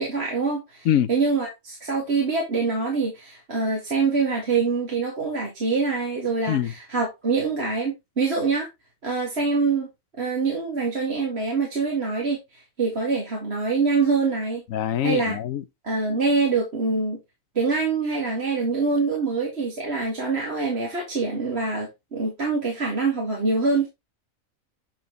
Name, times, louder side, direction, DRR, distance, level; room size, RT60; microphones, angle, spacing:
voice 1, 0.0-8.7 9.0-9.9 10.2-14.6 15.0-15.4 15.8-17.2 17.6-23.9, right 4 dB, 50° right, 2.4 m, -25 dB
voice 2, 14.7-15.6, left 10 dB, 75° left, 1.2 m, -23 dB
9.1 x 4.3 x 3.9 m
omnidirectional pair, 1.4 m